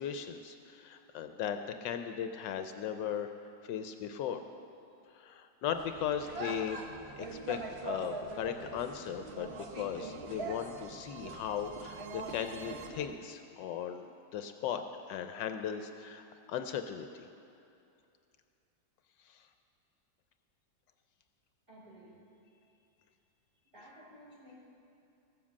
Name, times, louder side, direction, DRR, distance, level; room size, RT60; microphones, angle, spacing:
voice 1, 0.0-3.3 3.6-4.4 5.1-6.9 7.2-14.1 14.3-14.8 15.1-17.3 19.2-19.5, left 8 dB, 75° left, 7 dB, 1.2 m, -37 dB
sound 1, 5.7-13.1, right 2 dB, 45° right, 1.0 m, -43 dB
sound 2, 6.9-12.9, right 8 dB, 70° right, 1.2 m, -54 dB
voice 2, 21.7-22.5 23.7-24.5, equal, 25° right, -7 dB, 4.1 m, -55 dB
15.5 x 7.3 x 7.2 m, 2.7 s
omnidirectional pair, 2.0 m